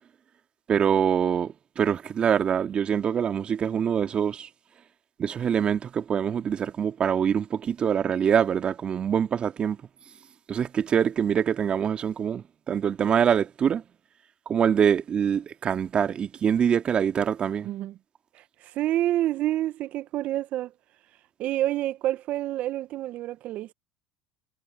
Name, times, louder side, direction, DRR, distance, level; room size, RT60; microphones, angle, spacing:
voice 1, 0.7-4.5 5.2-9.8 10.5-13.8 14.5-17.7, right 8 dB, 35° right, 2.1 m, -24 dB
voice 2, 17.6-18.0 18.3-20.7 21.4-23.7, right 14 dB, 55° right, 0.9 m, -28 dB
hypercardioid pair, 90°, 3 cm